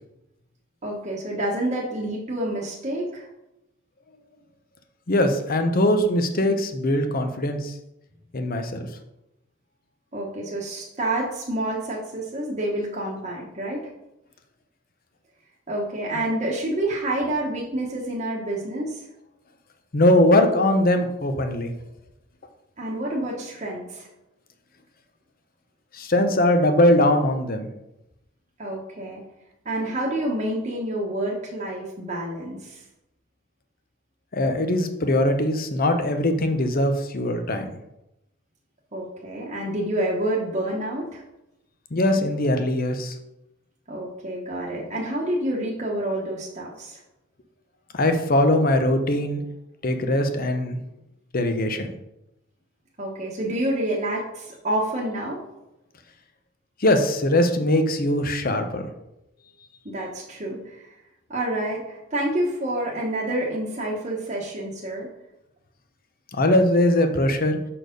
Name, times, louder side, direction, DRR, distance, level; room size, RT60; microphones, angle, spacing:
voice 1, 0.8-3.3 10.1-13.9 15.7-19.1 22.8-24.1 28.6-29.2 29.6-32.8 38.9-41.2 43.9-47.0 53.0-55.4 59.8-60.9 61.3-65.1, right 1 dB, 35° right, -4 dB, 1.1 m, -28 dB
voice 2, 5.1-7.7 8.3-8.8 19.9-21.7 25.9-27.7 34.3-37.7 41.9-43.2 47.9-49.4 49.8-50.8 51.3-51.9 56.8-58.9 66.3-67.6, left 1 dB, 45° left, 7 dB, 0.8 m, -21 dB
6.4 x 4.4 x 5.2 m, 0.89 s
head